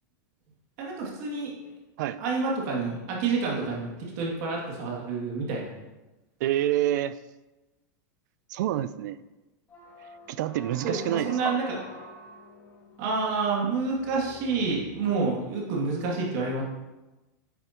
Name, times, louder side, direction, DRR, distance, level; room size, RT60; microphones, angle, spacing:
voice 1, 0.8-1.5 2.2-5.7 10.8-11.8 13.0-16.6, right 4 dB, 55° right, -3 dB, 2.5 m, -28 dB
voice 2, 6.4-7.2 8.5-9.2 10.3-11.5, right 12 dB, 70° right, 16 dB, 0.5 m, -27 dB
sound 1, 9.7-15.7, left 1 dB, 20° left, 2.4 m, -47 dB
9.7 x 9.1 x 3.0 m, 1.1 s
supercardioid pair, 155°, 10 cm